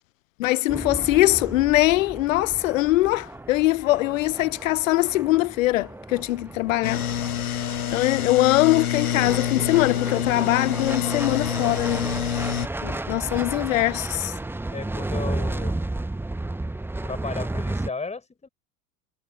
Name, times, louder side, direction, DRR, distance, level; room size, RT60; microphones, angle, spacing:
voice 1, 0.4-7.0 7.4-12.1 12.8-14.3, left 17 dB, 60° left, 0.5 m, -22 dB
sound 1, 0.7-17.9, right 2 dB, 5° right, 1.1 m, -33 dB
sound 2, 6.8-12.7, left 10 dB, 80° left, 1.0 m, -27 dB
voice 2, 14.7-15.7 17.0-18.5, left 4 dB, 15° left, 4.6 m, -34 dB
figure-of-eight pair, 75°, 44 cm